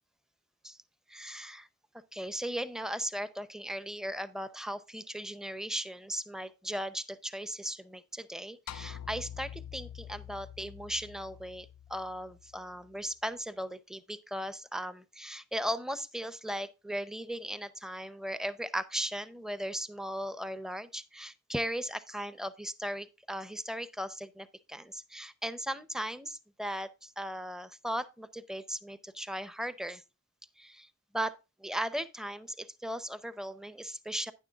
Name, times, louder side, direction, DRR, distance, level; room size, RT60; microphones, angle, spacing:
voice 1, 1.1-1.7 2.1-30.0 30.6-30.9 31.1-34.3, equal, ahead, 0.6 m, -37 dB
sound 1, 8.7-13.1, left 9 dB, 85° left, 0.4 m, -46 dB
11.0 x 9.7 x 2.3 m
head